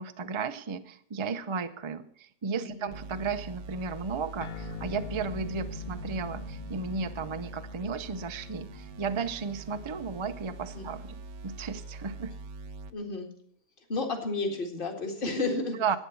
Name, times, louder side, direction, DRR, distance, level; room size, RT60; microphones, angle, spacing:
voice 1, 0.0-11.2 11.4-12.3 15.8-16.0, right 5 dB, 50° right, 9 dB, 0.3 m, -34 dB
voice 2, 2.6-2.9 10.7-10.9 12.9-13.3 13.9-15.8, left 3 dB, 30° left, 2 dB, 2.2 m, -32 dB
sound 1, 2.9-12.9, right 3 dB, 90° right, 1.5 m, -45 dB
sound 2, 4.4-11.2, left 2 dB, 65° left, 0.4 m, -42 dB
11.5 x 9.3 x 7.1 m, 0.65 s
omnidirectional pair, 1.8 m